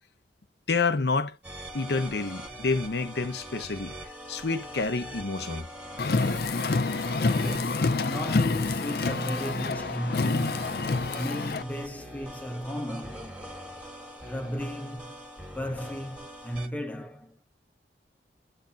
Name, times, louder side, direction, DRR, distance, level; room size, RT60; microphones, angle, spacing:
voice 1, 0.7-1.4 1.7-3.9 4.3-5.7, left 4 dB, 75° left, 0.9 m, -28 dB
sound 1, 1.4-16.7, equal, 5° right, 1.7 m, -43 dB
Car, 6.0-11.6, left 3 dB, 60° left, 0.5 m, -27 dB
voice 2, 7.3-10.9 11.2-13.5 14.3-15.2 15.5-17.4, equal, 10° left, 0.9 m, -35 dB
8.7 x 4.3 x 2.6 m
head